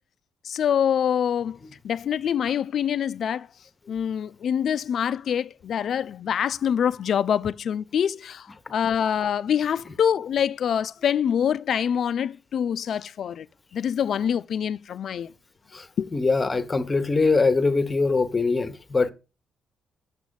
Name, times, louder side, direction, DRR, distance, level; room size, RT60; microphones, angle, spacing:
voice 1, 0.4-1.6 1.8-3.5 3.9-13.5 13.7-15.3 16.0-16.1, left 8 dB, 60° left, 0.4 m, -25 dB
voice 2, 16.1-19.1, left 3 dB, 25° left, 1.0 m, -22 dB
7.2 x 6.1 x 4.0 m
cardioid pair, 90°, 0 cm